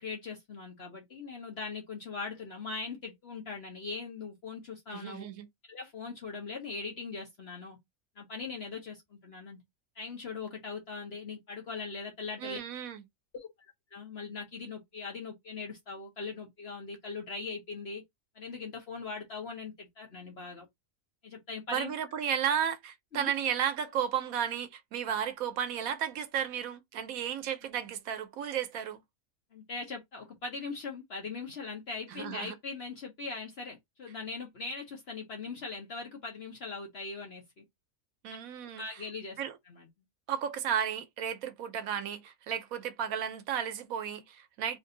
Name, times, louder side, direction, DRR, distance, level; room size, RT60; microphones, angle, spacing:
voice 1, 0.0-5.3 5.7-7.8 8.2-9.6 10.0-12.6 13.3-13.5 13.9-18.0 18.3-20.7 21.2-21.9 23.1-23.3 29.5-37.6 38.6-39.4 39.7-39.9, left 4 dB, 50° left, 1.1 m, -40 dB
voice 2, 4.9-5.5 12.4-13.0 21.7-29.0 32.1-32.5 38.2-38.8 39.4-39.6 40.3-44.8, right 9 dB, 90° right, 1.1 m, -33 dB
3.3 x 2.6 x 3.7 m
omnidirectional pair, 1.4 m